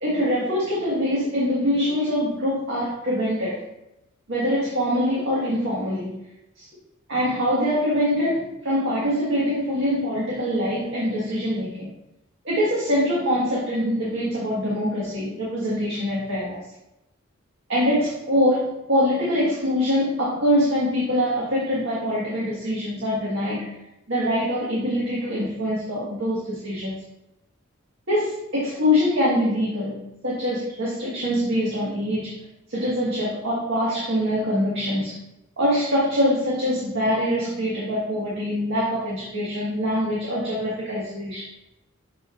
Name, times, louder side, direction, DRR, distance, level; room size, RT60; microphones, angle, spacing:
voice 1, 0.0-3.6 4.3-6.1 6.6-6.7 7.1-11.9 12.4-16.6 17.7-23.7 24.1-27.0 28.1-32.4 32.7-35.2 35.6-41.5, equal, 65° right, -7 dB, 1.7 m, -24 dB
6.9 x 5.6 x 2.5 m, 0.90 s
head